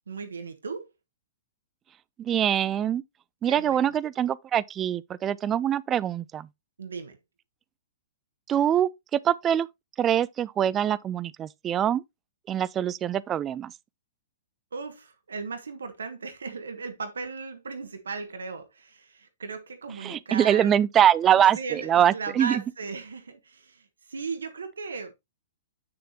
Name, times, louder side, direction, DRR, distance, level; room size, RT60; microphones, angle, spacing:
voice 1, 0.1-0.9 3.4-4.0 6.8-7.2 14.7-20.8 21.5-25.1, right 4 dB, 80° right, 1.3 m, -37 dB
voice 2, 2.2-3.0 3.4-6.5 8.5-9.7 10.0-12.0 12.5-13.7 20.0-22.6, right 10 dB, 25° right, 0.5 m, -24 dB
8.8 x 6.7 x 2.8 m
hypercardioid pair, 115°, 0 cm